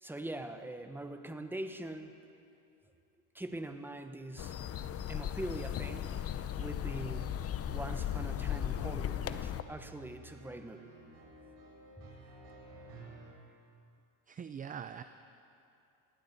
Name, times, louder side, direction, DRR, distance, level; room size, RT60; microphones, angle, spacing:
voice 1, 0.0-2.2 3.3-4.5 5.1-6.1 6.3-7.4 7.7-10.8, right 1 dB, 5° right, 7 dB, 1.0 m, -42 dB
sound 1, 4.4-9.6, left 10 dB, 35° left, 0.7 m, -36 dB
sound 2, 7.5-13.3, right 2 dB, 55° right, 4.4 m, -53 dB
voice 2, 14.3-15.0, right 7 dB, 20° right, 10 dB, 0.5 m, -42 dB
20.5 x 16.0 x 4.1 m, 2.6 s
supercardioid pair, 100°, 41 cm